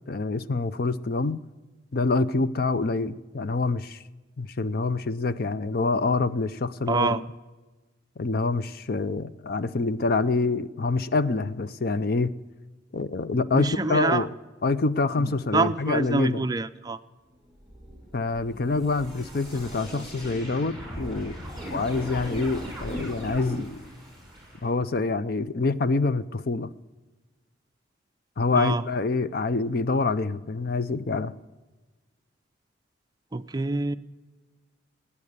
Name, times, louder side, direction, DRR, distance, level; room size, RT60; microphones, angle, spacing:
voice 1, 0.1-1.4 1.9-4.0 4.4-7.2 8.2-12.3 12.9-14.3 14.6-16.4 18.1-21.4 21.7-23.8 24.6-26.7 28.4-31.3, left 3 dB, 50° left, 0.5 m, -26 dB
voice 2, 6.9-7.2 13.5-14.3 15.2-17.0 19.9-20.1 28.5-28.8 33.3-34.0, right 3 dB, 20° right, 0.4 m, -26 dB
sound 1, 17.5-24.6, equal, ahead, 6.3 m, -38 dB
19.5 x 8.5 x 6.7 m
head